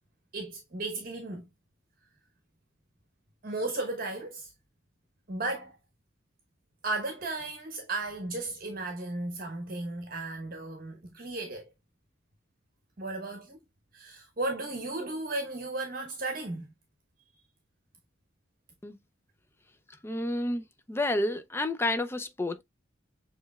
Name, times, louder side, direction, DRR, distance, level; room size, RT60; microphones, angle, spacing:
voice 1, 0.3-1.5 3.4-4.5 5.3-5.8 6.8-11.7 13.0-13.6 13.9-16.7, right 2 dB, 45° right, 1.0 m, -35 dB
voice 2, 20.0-22.6, left 1 dB, 10° left, 0.4 m, -30 dB
6.7 x 3.1 x 2.3 m
head